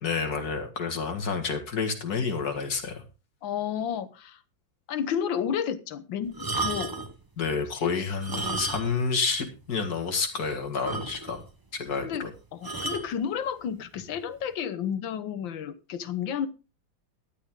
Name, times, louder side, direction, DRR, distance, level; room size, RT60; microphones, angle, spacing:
voice 1, 0.0-3.0 7.4-11.4 11.7-12.3, left 5 dB, 55° left, 4 dB, 2.4 m, -29 dB
voice 2, 3.4-4.4 4.9-6.9 7.8-8.1 12.0-12.3 12.5-16.5, left 8 dB, 80° left, 13 dB, 1.7 m, -31 dB
sound 1, 6.3-7.2 8.1-9.1 9.4-9.5 10.0-10.1 10.4-10.5 10.8-11.5 12.6-13.1 14.0-14.2, right 3 dB, 30° right, 0.4 m, -32 dB
13.0 x 10.5 x 3.7 m, 0.31 s
omnidirectional pair, 2.1 m